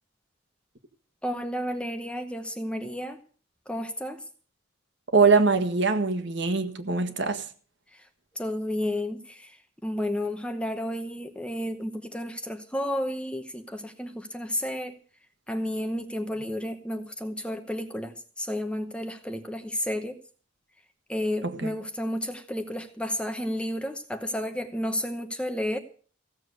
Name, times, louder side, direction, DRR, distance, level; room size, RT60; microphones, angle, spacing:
voice 1, 1.2-3.2 3.7-4.2 7.9-8.1 8.3-15.0 15.5-20.2 21.1-25.8, left 1 dB, 5° left, 0.9 m, -32 dB
voice 2, 5.1-7.4 21.4-21.7, right 4 dB, 55° right, 1.6 m, -23 dB
16.0 x 7.3 x 8.0 m
head